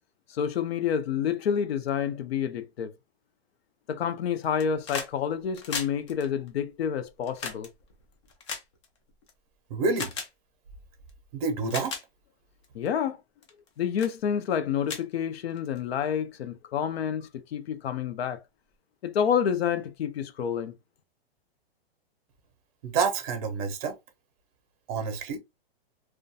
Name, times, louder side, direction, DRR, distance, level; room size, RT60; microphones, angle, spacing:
voice 1, 0.3-2.9 3.9-7.7 12.7-13.2 13.8-18.4 19.0-20.7, left 8 dB, 75° left, 0.6 m, -28 dB
sound 1, 4.4-5.1 5.4-9.3 9.9-10.3 11.1-11.2 11.6-12.0 12.6-12.9 13.4-13.7 14.0-14.1 14.5-14.6 14.8-15.8 16.9-17.0, left 5 dB, 30° left, 0.4 m, -37 dB
voice 2, 9.7-10.1 11.3-11.9 22.8-24.0 24.9-25.4, right 5 dB, 35° right, 0.6 m, -28 dB
2.3 x 2.2 x 2.6 m
hypercardioid pair, 165°, 31 cm